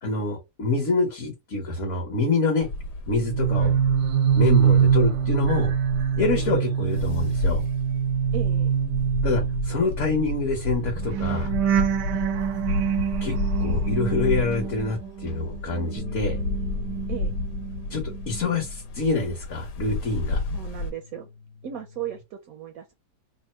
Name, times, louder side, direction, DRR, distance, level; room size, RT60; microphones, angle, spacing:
voice 1, 0.0-2.7 3.1-3.8 4.3-5.7 6.2-7.6 9.2-11.6 13.2-16.4 17.9-20.4, left 3 dB, 50° left, 1.2 m, -26 dB
sound 1, 2.6-20.9, left 2 dB, 75° left, 1.3 m, -31 dB
sound 2, 3.1-15.4 15.7-17.8 18.1-18.5, right 8 dB, 85° right, 1.3 m, -25 dB
voice 2, 8.3-8.7 17.1-17.4 20.5-21.3 21.6-22.9, right 10 dB, 70° right, 0.9 m, -36 dB
sound 3, 16.0-22.2, left 4 dB, 15° left, 0.4 m, -42 dB
3.6 x 2.1 x 4.2 m
omnidirectional pair, 1.8 m